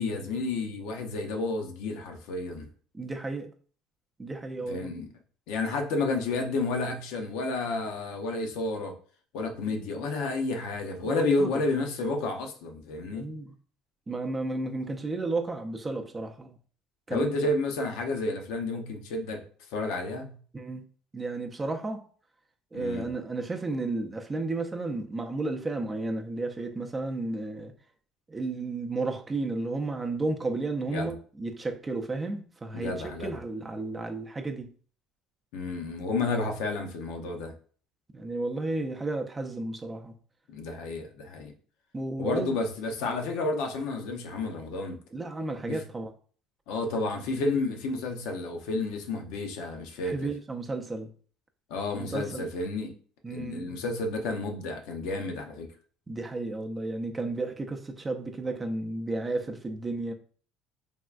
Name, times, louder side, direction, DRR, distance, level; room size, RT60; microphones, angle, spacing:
voice 1, 0.0-2.7 4.7-5.1 5.5-8.9 9.3-13.3 17.1-19.4 19.7-20.4 22.7-23.1 30.9-31.1 32.7-33.4 35.5-37.5 40.5-41.5 42.2-45.0 45.7-45.8 46.7-50.3 51.7-52.9 53.3-55.7, left 3 dB, 80° left, 0.5 m, -31 dB
voice 2, 2.9-3.5 4.2-4.9 11.1-11.5 13.1-13.5 14.1-16.6 17.1-17.3 20.5-20.8 21.1-22.0 22.7-27.7 28.3-34.7 38.1-40.1 41.9-42.6 43.0-43.2 45.1-46.1 50.0-51.1 51.9-52.5 53.2-53.8 56.1-60.1, right 2 dB, 20° right, 0.4 m, -33 dB
3.5 x 2.2 x 2.4 m
supercardioid pair, 100°, 0 cm